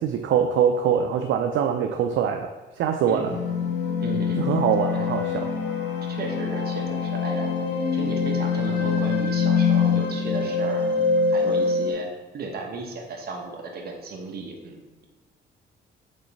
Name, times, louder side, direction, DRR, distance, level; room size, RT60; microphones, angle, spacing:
voice 1, 0.0-3.4 4.4-5.5, right 8 dB, 75° right, 5 dB, 0.5 m, -23 dB
voice 2, 3.1-3.4 4.0-4.6 4.9-5.1 6.1-7.5 7.9-12.1 12.3-15.0, right 3 dB, 50° right, 1 dB, 1.1 m, -35 dB
sound 1, 3.2-11.9, left 5 dB, 60° left, 1.5 m, -24 dB
5.3 x 3.9 x 5.3 m, 1.2 s
cardioid pair, 90°, 20 cm